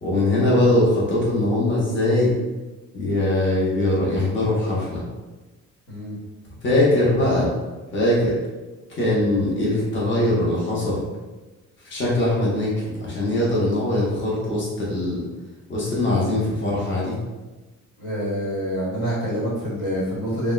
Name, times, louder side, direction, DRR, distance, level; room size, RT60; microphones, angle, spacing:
voice 1, 0.0-2.3 2.9-5.0 6.6-7.5 7.9-8.3 9.0-11.0 11.8-15.3 15.7-17.2, left 1 dB, 40° left, -6 dB, 1.0 m, -21 dB
voice 2, 18.0-20.5, equal, 80° left, -7 dB, 1.3 m, -26 dB
3.5 x 2.1 x 2.4 m, 1.2 s
cardioid pair, 90°, 30 cm